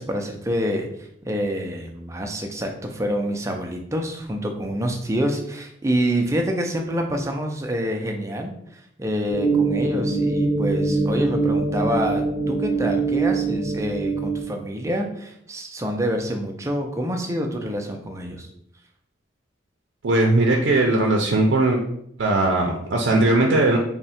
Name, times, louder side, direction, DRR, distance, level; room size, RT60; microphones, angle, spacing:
voice 1, 0.0-18.5, equal, 15° right, 3 dB, 0.4 m, -27 dB
sound 1, 9.3-14.4, right 3 dB, 40° left, 0.7 m, -23 dB
voice 2, 20.0-21.8 22.2-23.8, right 2 dB, 80° right, 0 dB, 0.5 m, -19 dB
3.5 x 2.1 x 4.1 m, 0.73 s
head